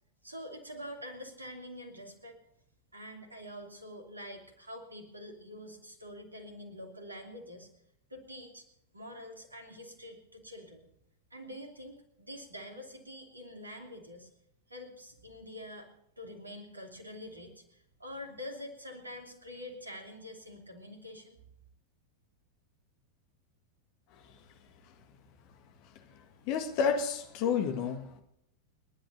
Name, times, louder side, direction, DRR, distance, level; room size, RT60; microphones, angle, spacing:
voice 1, 0.2-2.4 2.9-7.7 8.1-8.7 8.9-10.9 11.3-14.3 14.7-15.9 16.2-21.4, left 1 dB, 80° right, 2.8 m, -46 dB
voice 2, 26.4-28.2, left 6 dB, 45° left, 1.8 m, -30 dB
30.0 x 11.0 x 2.8 m
figure-of-eight pair, 90°, 0 cm